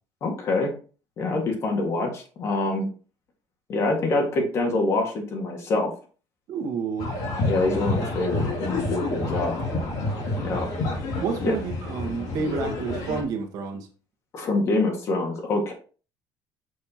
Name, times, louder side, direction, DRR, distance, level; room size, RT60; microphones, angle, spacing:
voice 1, 0.2-0.7 1.2-2.9 3.7-5.9 7.4-9.6 10.4-10.7 11.4-11.5 14.3-15.7, left 2 dB, 40° left, 2 dB, 1.8 m, -25 dB
voice 2, 6.5-7.1 10.4-10.5 11.2-13.9, right 5 dB, 55° right, 3 dB, 1.5 m, -30 dB
sound 1, 7.0-13.2, left 2 dB, 60° left, 3.0 m, -29 dB
6.7 x 6.4 x 2.9 m, 0.37 s
cardioid pair, 155°, 7 cm